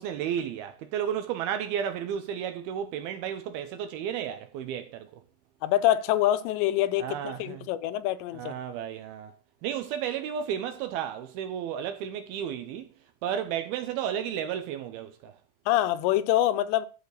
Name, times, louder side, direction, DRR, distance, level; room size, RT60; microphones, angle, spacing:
voice 1, 0.0-5.1 7.0-7.6 8.3-9.3 9.6-12.9 13.2-15.4, right 9 dB, 75° right, 2.3 m, -33 dB
voice 2, 5.6-8.6 15.7-16.9, left 13 dB, 85° left, 2.9 m, -25 dB
13.0 x 5.0 x 6.5 m
omnidirectional pair, 5.0 m